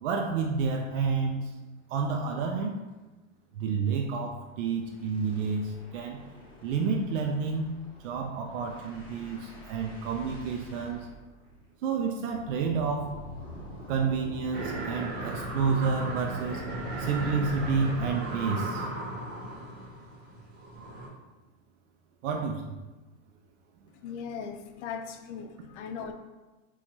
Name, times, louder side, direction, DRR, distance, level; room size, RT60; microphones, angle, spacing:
voice 1, 0.0-1.5 1.9-2.7 3.5-6.2 6.6-7.7 8.0-11.1 11.8-13.1 13.9-16.6 17.0-18.9 22.2-22.8, right 5 dB, 80° right, 2 dB, 0.5 m, -30 dB
sound 1, 1.4-1.6 1.9-2.0 2.3-2.5 2.8-2.9 4.2-18.1, equal, 10° left, 0.7 m, -46 dB
sound 2, 14.5-21.1, right 1 dB, 25° right, 0.9 m, -36 dB
voice 2, 24.0-26.1, left 6 dB, 65° left, 6 dB, 0.5 m, -38 dB
4.4 x 2.4 x 2.8 m, 1.2 s
supercardioid pair, 155°, 38 cm